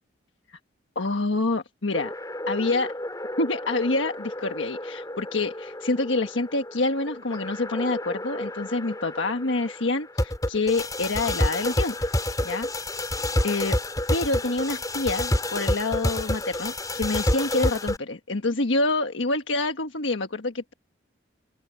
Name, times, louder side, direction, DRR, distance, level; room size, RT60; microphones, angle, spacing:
voice 1, 0.9-2.1 2.5-2.9 3.4-12.1 12.4-12.7 13.0-13.2 13.4-13.8 14.1-20.7, left 2 dB, 80° left, 1.4 m, -27 dB
sound 1, 1.9-18.0, left 1 dB, 20° left, 3.6 m, -29 dB
open air
head